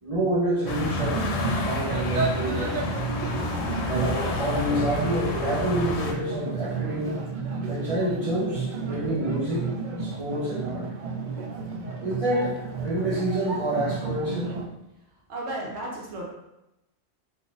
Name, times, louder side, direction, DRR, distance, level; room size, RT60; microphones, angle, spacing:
voice 1, 0.0-1.2 1.5-2.8 3.9-7.2 7.7-9.7 10.0-10.9 12.0-14.5, right 1 dB, 30° right, -7 dB, 1.0 m, -28 dB
sound 1, 0.6-14.7, right 4 dB, 55° right, 0.6 m, -32 dB
sound 2, 0.7-6.1, left 3 dB, 80° left, 0.9 m, -30 dB
voice 2, 15.3-16.2, right 1 dB, 90° right, -3 dB, 1.1 m, -33 dB
3.8 x 2.7 x 2.5 m, 0.90 s
omnidirectional pair, 1.1 m